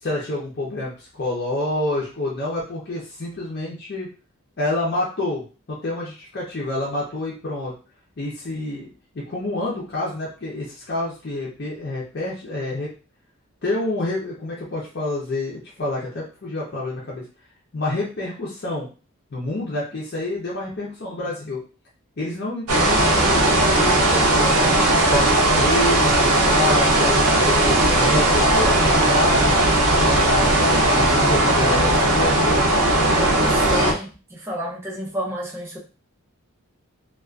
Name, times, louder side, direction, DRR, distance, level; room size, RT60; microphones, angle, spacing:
voice 1, 0.0-4.1 4.6-7.7 8.2-12.9 13.6-17.3 17.7-18.9 19.3-21.6 22.2-24.7 25.0-29.6 30.0-32.4, left 2 dB, 45° left, -5 dB, 0.6 m, -28 dB
sound 1, 22.7-33.9, right 1 dB, 85° right, 0.6 m, -18 dB
voice 2, 33.2-35.8, equal, 10° right, -2 dB, 0.4 m, -30 dB
2.4 x 2.3 x 2.3 m, 0.35 s
head